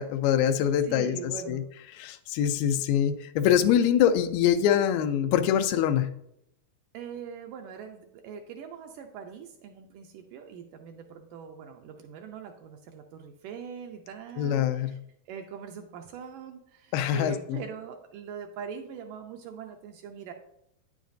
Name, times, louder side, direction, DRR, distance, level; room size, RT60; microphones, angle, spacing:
voice 1, 0.0-1.2 1.5-1.6 2.0-6.1 14.4-14.9 16.9-17.3, left 9 dB, 90° left, 10 dB, 2.4 m, -24 dB
voice 2, 0.8-1.7 6.9-15.0 15.3-20.3, right 7 dB, 80° right, 4 dB, 2.0 m, -42 dB
9.2 x 7.2 x 2.6 m, 0.78 s
omnidirectional pair, 4.2 m